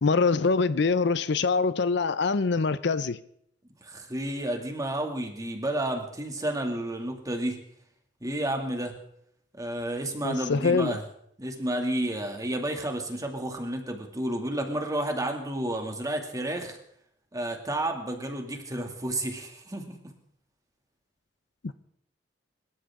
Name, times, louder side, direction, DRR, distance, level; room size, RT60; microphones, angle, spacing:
voice 1, 0.0-3.2 10.2-11.0, left 4 dB, 65° left, 0.6 m, -24 dB
voice 2, 3.8-7.6 8.2-8.9 9.6-11.0 11.4-16.8 17.3-20.0, right 1 dB, 20° right, 2.4 m, -31 dB
24.5 x 13.0 x 3.7 m
head